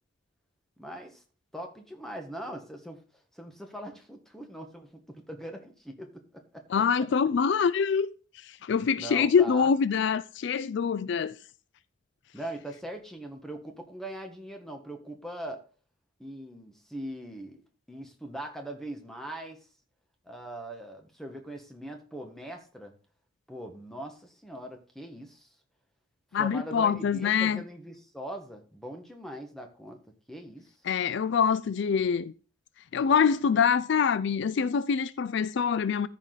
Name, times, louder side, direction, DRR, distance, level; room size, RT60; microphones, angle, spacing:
voice 1, 0.8-1.2 1.5-3.0 3.3-6.6 9.0-9.7 12.3-15.6 16.2-19.6 20.2-22.9 23.5-25.5 26.3-30.0 30.3-30.7, right 1 dB, ahead, 1.4 m, -41 dB
voice 2, 6.7-8.1 8.3-11.4 26.3-27.6 30.9-32.3 32.9-36.1, left 6 dB, 60° left, 0.3 m, -25 dB
14.0 x 4.8 x 4.0 m
head